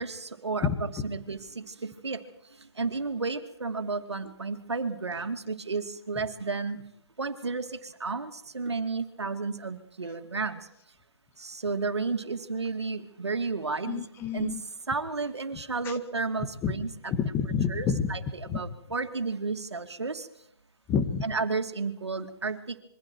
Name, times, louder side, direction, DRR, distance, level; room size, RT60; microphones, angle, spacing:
voice 1, 0.0-0.7 1.0-2.2 2.6-6.9 7.2-10.7 11.4-14.0 14.3-14.5 14.9-17.1 17.7-20.3 21.2-22.8, right 4 dB, 80° right, 7 dB, 2.5 m, -32 dB
voice 2, 0.6-1.1 13.9-14.6 15.5-16.0 16.6-16.8 17.1-18.1 18.5-18.6 20.9-21.2, left 6 dB, 15° left, 9 dB, 1.8 m, -29 dB
27.0 x 23.5 x 4.7 m, 0.75 s
figure-of-eight pair, 140°, 14 cm